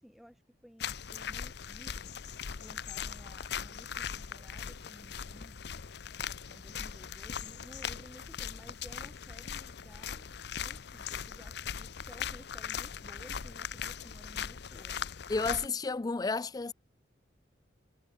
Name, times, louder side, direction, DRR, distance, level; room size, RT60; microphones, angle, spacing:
voice 1, 0.0-2.1 2.5-5.6 6.5-10.3 10.6-15.0, equal, ahead, 1.6 m, -55 dB
sound 1, 0.8-15.7, left 7 dB, 60° left, 0.7 m, -40 dB
voice 2, 15.3-16.7, left 4 dB, 20° left, 0.4 m, -31 dB
head